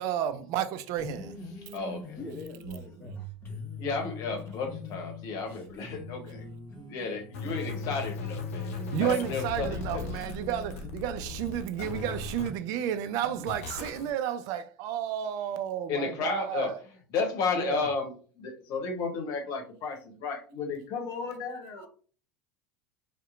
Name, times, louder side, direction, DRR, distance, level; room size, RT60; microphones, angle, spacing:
voice 1, 0.0-1.4 8.9-16.8 17.6-17.8, right 10 dB, 55° right, 0.4 m, -32 dB
sound 1, 0.9-13.5, left 1 dB, 30° left, 1.1 m, -44 dB
voice 2, 1.5-2.2 3.8-6.5 6.9-10.3 15.9-16.8 17.1-21.9, left 4 dB, 55° left, 0.9 m, -33 dB
voice 3, 2.2-3.2 5.6-6.1, left 2 dB, 15° left, 0.6 m, -46 dB
sound 2, 7.3-12.5 13.5-14.1, left 5 dB, 75° left, 0.5 m, -37 dB
2.7 x 2.1 x 2.4 m
hypercardioid pair, 85°, 7 cm